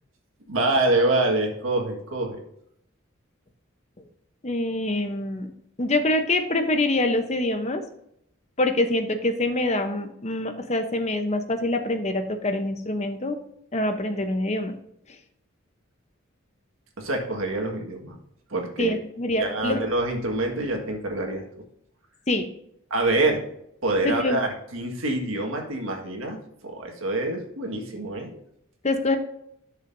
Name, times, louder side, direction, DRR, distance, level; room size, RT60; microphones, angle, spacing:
voice 1, 0.5-2.4 17.0-18.2 18.5-18.9 19.3-21.4 22.9-23.4 23.8-28.4, right 2 dB, 80° right, 2 dB, 1.7 m, -26 dB
voice 2, 4.4-5.5 5.8-7.8 8.6-13.4 13.7-14.7 18.8-19.8 22.3-22.5 24.0-24.4 28.8-29.2, left 2 dB, 35° left, 7 dB, 0.8 m, -25 dB
10.5 x 6.5 x 2.7 m, 0.74 s
head